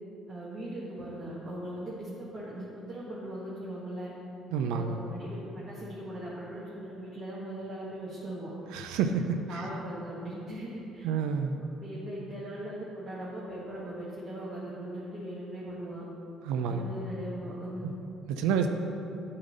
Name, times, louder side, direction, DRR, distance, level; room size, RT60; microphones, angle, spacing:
voice 1, 0.3-4.1 4.6-8.5 9.5-11.1 11.6-16.1 16.7-17.9, right 1 dB, 35° right, -7 dB, 1.6 m, -39 dB
voice 2, 4.5-5.0 8.7-9.6 11.0-11.6 16.5-16.9 17.8-17.9 18.3-18.7, right 6 dB, 80° right, 6 dB, 0.4 m, -29 dB
8.0 x 3.8 x 6.5 m, 2.9 s
supercardioid pair, 65°, 0 cm